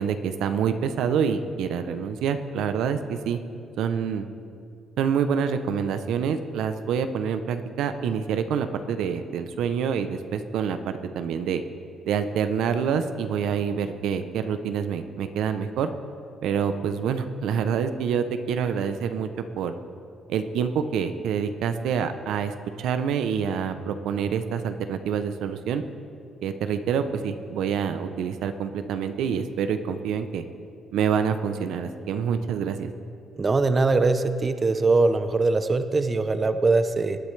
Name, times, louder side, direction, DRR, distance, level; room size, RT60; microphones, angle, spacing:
voice 1, 0.0-3.4 3.8-4.3 5.0-10.8 11.1-11.6 12.0-15.9 16.4-19.3 19.6-19.7 20.3-25.8 26.4-30.4 30.9-32.9, right 7 dB, 85° right, 9 dB, 0.6 m, -26 dB
voice 2, 33.4-37.2, right 3 dB, 35° right, 9 dB, 0.7 m, -22 dB
19.0 x 10.5 x 3.3 m, 2.4 s
cardioid pair, 90°, 0 cm